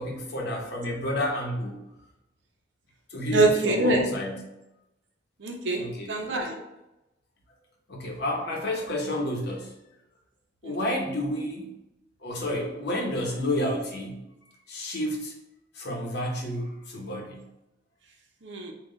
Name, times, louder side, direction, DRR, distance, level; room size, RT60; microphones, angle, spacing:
voice 1, 0.0-1.8 3.1-4.4 5.8-6.1 7.9-9.8 10.6-11.8 12.2-14.3 14.7-15.3 15.7-17.5, left 1 dB, 60° left, 0 dB, 0.9 m, -30 dB
voice 2, 3.3-4.1 5.4-6.6 10.6-11.0 18.4-18.7, right 2 dB, 80° right, 2 dB, 0.7 m, -25 dB
3.7 x 2.3 x 3.9 m, 0.94 s
head